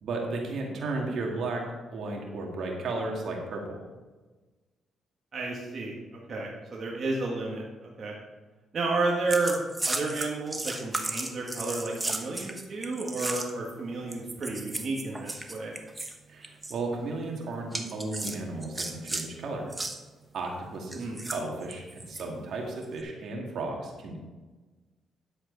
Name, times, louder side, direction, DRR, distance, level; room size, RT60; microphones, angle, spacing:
voice 1, 0.0-1.6 1.9-3.8 16.3-19.7 20.3-24.2, right 2 dB, 65° right, 0 dB, 2.2 m, -34 dB
voice 2, 5.3-8.2 8.7-15.7 20.9-21.2, right 3 dB, 50° right, -3 dB, 1.7 m, -32 dB
sound 1, 9.3-13.7 14.1-16.2 16.4-16.8 17.7-19.3 19.7-20.0 20.9-22.2 22.8-23.0, right 2 dB, 20° right, 1.2 m, -35 dB
10.5 x 7.8 x 4.0 m, 1.2 s
cardioid pair, 85°, 0 cm